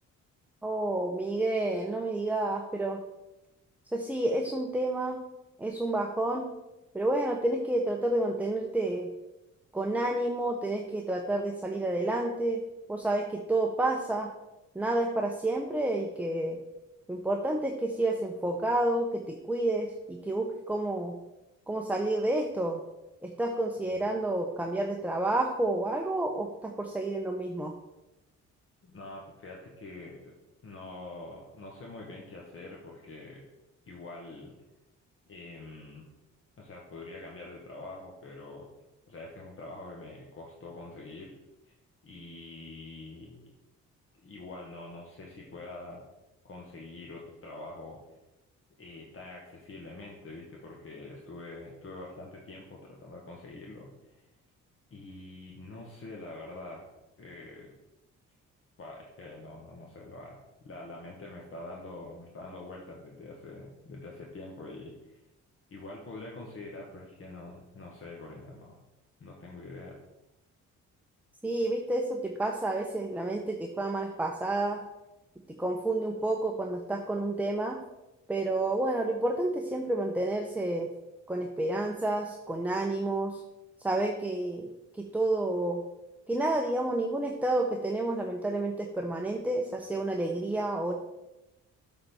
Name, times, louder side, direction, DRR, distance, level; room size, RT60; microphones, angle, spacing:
voice 1, 0.6-3.0 3.9-5.2 5.6-6.5 6.9-9.1 9.7-12.6 12.9-14.3 14.7-16.6 17.1-21.2 21.7-22.8 23.2-27.7 71.4-74.8 75.6-77.8 78.3-80.9 81.3-83.4 83.8-84.7 84.9-85.8 86.3-90.9, right 2 dB, 5° right, 2 dB, 0.7 m, -30 dB
voice 2, 28.8-30.3 30.6-33.4 33.9-34.5 35.3-36.1 36.6-38.7 39.1-41.4 41.6-41.7 42.0-43.4 44.2-46.0 46.4-48.0 48.8-54.2 54.9-56.8 57.2-57.7 58.8-60.4 60.6-65.2 65.7-68.8 69.2-70.0, left 2 dB, 45° left, -2 dB, 1.4 m, -45 dB
7.6 x 4.1 x 5.5 m, 0.99 s
cardioid pair, 90°, 30 cm